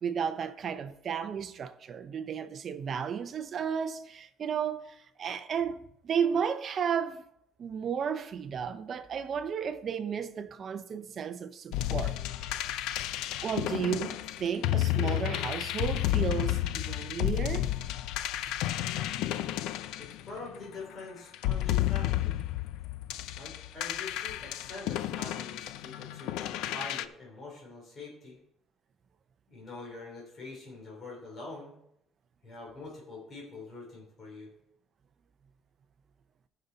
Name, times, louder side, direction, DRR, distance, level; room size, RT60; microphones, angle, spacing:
voice 1, 0.0-7.2 7.6-12.6 13.4-17.7, right 7 dB, 35° right, 0.6 m, -33 dB
sound 1, 11.7-20.7 21.3-27.0, left 13 dB, 80° left, 0.4 m, -31 dB
voice 2, 18.7-19.6 20.0-22.4 23.3-28.4 29.5-31.7 32.4-34.5, left 3 dB, 30° left, 3.2 m, -45 dB
14.5 x 5.6 x 4.0 m
cardioid pair, 165°, 0 cm